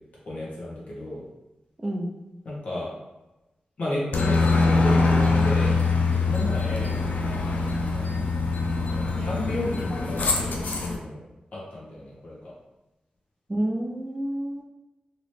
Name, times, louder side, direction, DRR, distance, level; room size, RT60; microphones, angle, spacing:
voice 1, 0.2-1.2 2.4-2.9 3.8-5.7 6.1-7.0 7.5-8.1 8.9-11.2 11.5-12.5, left 1 dB, 60° left, -5 dB, 1.3 m, -33 dB
Aircraft, 4.1-11.0, left 3 dB, 80° left, 0.5 m, -23 dB
voice 2, 13.5-14.6, right 1 dB, 20° right, 1 dB, 0.4 m, -29 dB
2.9 x 2.9 x 3.2 m, 1.0 s
wide cardioid pair, 90°, 3 cm